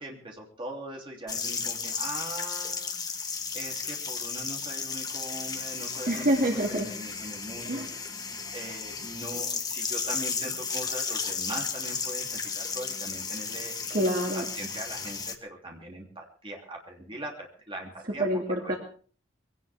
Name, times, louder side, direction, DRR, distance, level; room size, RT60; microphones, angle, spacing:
voice 1, 0.0-13.7 14.3-18.2 18.6-18.7, right 1 dB, 25° right, 0 dB, 3.2 m, -41 dB
sound 1, 1.3-15.3, left 5 dB, 20° left, 1.1 m, -34 dB
voice 2, 6.1-6.9 7.7-7.9 13.9-14.4 18.2-18.8, right 1 dB, 45° right, 1 dB, 2.3 m, -26 dB
22.0 x 17.5 x 3.6 m, 0.43 s
head